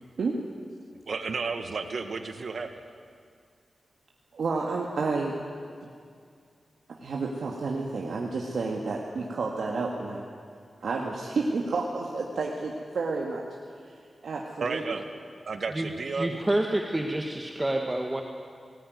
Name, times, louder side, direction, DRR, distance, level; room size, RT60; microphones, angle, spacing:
voice 1, 1.0-2.7 14.6-15.0 15.5-16.4, right 4 dB, 60° right, 7 dB, 1.8 m, -32 dB
voice 2, 4.3-5.3 5.8-5.9 7.0-10.2 10.8-13.4 14.2-15.0, right 3 dB, 80° right, -1 dB, 2.1 m, -30 dB
voice 3, 16.1-18.2, right 1 dB, 15° right, 3 dB, 1.4 m, -28 dB
19.5 x 19.0 x 9.5 m, 2.2 s
wide cardioid pair, 120°, 0 cm